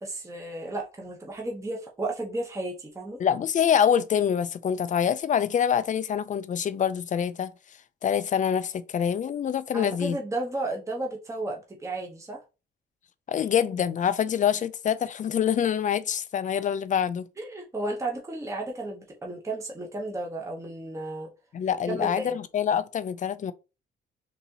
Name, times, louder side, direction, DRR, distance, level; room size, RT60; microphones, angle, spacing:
voice 1, 0.0-3.2 9.7-12.4 17.4-21.3 21.9-22.4, right 2 dB, 15° right, 0.8 m, -33 dB
voice 2, 3.2-7.5 8.0-10.2 13.3-17.3 21.5-23.5, left 8 dB, 40° left, 0.4 m, -25 dB
4.0 x 2.7 x 2.7 m
cardioid pair, 90°, 20 cm